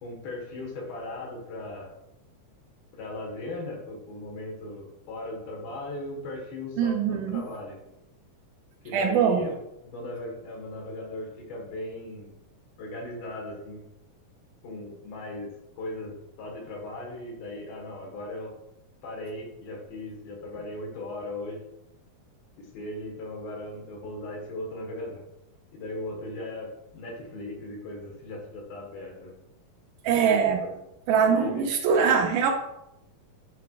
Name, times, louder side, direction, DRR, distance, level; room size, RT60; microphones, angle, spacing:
voice 1, 0.0-1.9 3.0-7.8 8.8-9.5 9.8-12.3 12.8-13.8 14.6-18.5 19.0-21.6 22.6-25.2 25.7-29.3 30.1-30.7 31.3-31.6, left 1 dB, 80° left, -1 dB, 3.3 m, -38 dB
voice 2, 6.8-7.4 8.9-9.5 30.0-30.6 31.1-32.5, right 6 dB, 85° right, 2 dB, 1.7 m, -22 dB
10.0 x 4.6 x 2.4 m, 0.88 s
omnidirectional pair, 4.2 m